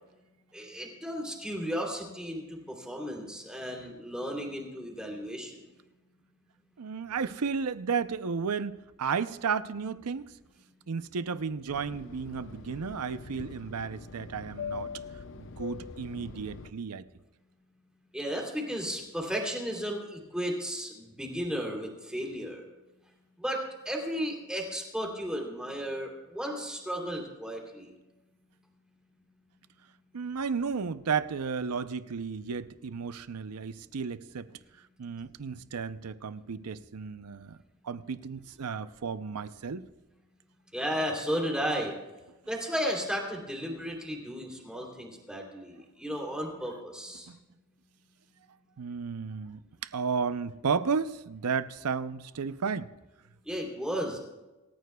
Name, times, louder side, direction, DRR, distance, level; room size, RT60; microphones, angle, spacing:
voice 1, 0.5-5.6 18.1-22.6 23.4-27.9 40.7-41.9 42.5-47.3 53.4-54.2, equal, 5° right, 3.0 m, -34 dB
voice 2, 6.8-10.3 10.9-14.9 15.4-17.0 30.1-34.5 35.0-37.6 37.8-39.9 47.3-47.4 48.8-52.9, right 5 dB, 85° right, 0.6 m, -33 dB
Fixed-wing aircraft airplane, 11.7-16.7, left 5 dB, 60° left, 0.8 m, -43 dB
26.0 x 14.0 x 2.3 m
head